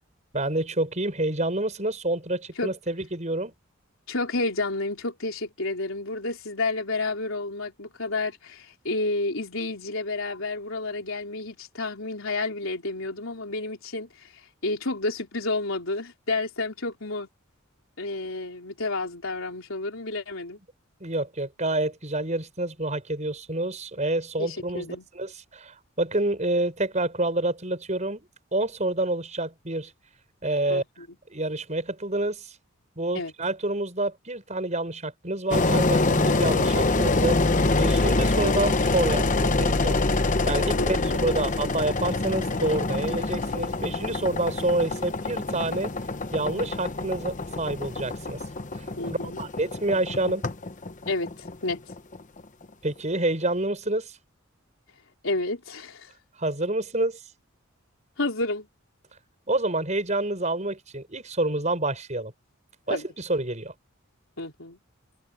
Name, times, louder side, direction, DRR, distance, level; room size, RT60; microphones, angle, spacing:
voice 1, 0.3-3.5 21.0-28.2 28.5-29.9 30.4-30.8 31.3-32.5 33.0-37.4 37.8-40.0 40.4-45.9 46.3-48.4 48.7-50.4 52.8-54.1 56.4-57.2 59.5-62.3 62.9-63.7, right 2 dB, 35° right, 6.3 m, -28 dB
voice 2, 4.1-17.3 18.0-20.6 24.4-25.1 30.7-31.1 33.1-33.3 40.8-41.4 49.0-49.4 51.1-51.8 55.2-56.1 58.2-58.7 62.9-63.1 64.4-64.8, left 2 dB, 75° left, 3.8 m, -30 dB
Engine, 35.5-52.4, left 2 dB, 35° left, 1.0 m, -25 dB
head